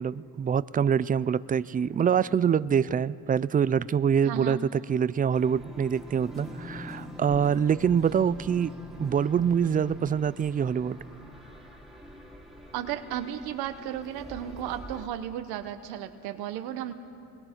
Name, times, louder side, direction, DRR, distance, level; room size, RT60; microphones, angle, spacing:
voice 1, 0.0-8.7 9.0-11.0, right 7 dB, 25° right, 0.4 m, -25 dB
voice 2, 4.2-4.6 12.7-16.9, right 10 dB, 85° right, 0.9 m, -34 dB
sound 1, 5.3-15.1, equal, ahead, 2.7 m, -44 dB
27.0 x 21.5 x 4.5 m
cardioid pair, 90°, 37 cm